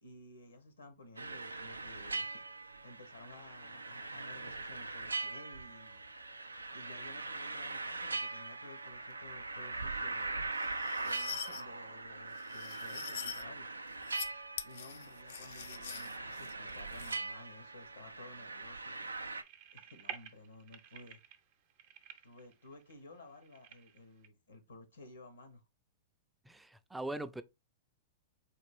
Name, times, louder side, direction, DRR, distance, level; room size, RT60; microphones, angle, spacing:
voice 1, 0.0-6.0 6.7-10.4 11.0-13.7 14.6-19.1 19.7-21.2 22.2-25.6, left 2 dB, 85° left, 0.9 m, -54 dB
sound 1, 1.2-19.4, right 3 dB, 90° right, 0.3 m, -41 dB
sound 2, 10.6-11.6 12.4-13.4 13.9-14.3 14.6-17.2, left 8 dB, 65° left, 0.4 m, -45 dB
sound 3, 18.7-24.3, right 8 dB, 50° right, 0.6 m, -52 dB
voice 2, 26.5-27.4, right 1 dB, 5° right, 0.3 m, -41 dB
4.2 x 2.4 x 3.4 m
figure-of-eight pair, 105°, 0 cm